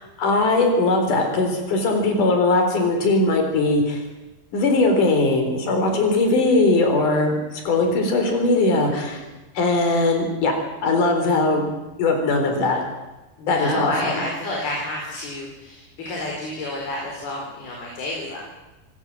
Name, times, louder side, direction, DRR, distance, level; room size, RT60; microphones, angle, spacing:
voice 1, 0.0-4.0 4.5-9.2 9.6-10.5 10.8-11.7 12.0-12.8 13.5-14.1, left 2 dB, 60° left, 4 dB, 5.4 m, -20 dB
voice 2, 8.5-9.3 13.4-18.4, left 2 dB, 85° left, -1 dB, 6.3 m, -30 dB
26.0 x 17.0 x 7.7 m, 1.1 s
omnidirectional pair, 4.3 m